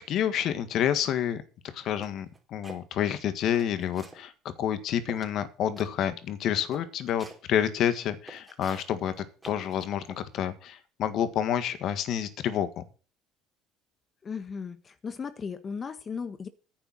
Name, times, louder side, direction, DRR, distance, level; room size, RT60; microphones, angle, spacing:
voice 1, 0.1-1.4 1.7-4.3 4.6-12.8, left 10 dB, 60° left, 12 dB, 1.7 m, -29 dB
sound 1, 2.0-2.8 3.3-4.2 4.7-4.8 5.1-5.4 5.8-5.9 6.3-6.4 6.7-7.4 8.0-10.2, right 2 dB, 15° right, 3.6 m, -47 dB
voice 2, 14.2-16.5, left 6 dB, 35° left, 11 dB, 1.3 m, -36 dB
10.0 x 6.7 x 7.7 m, 0.37 s
supercardioid pair, 85°, 0 cm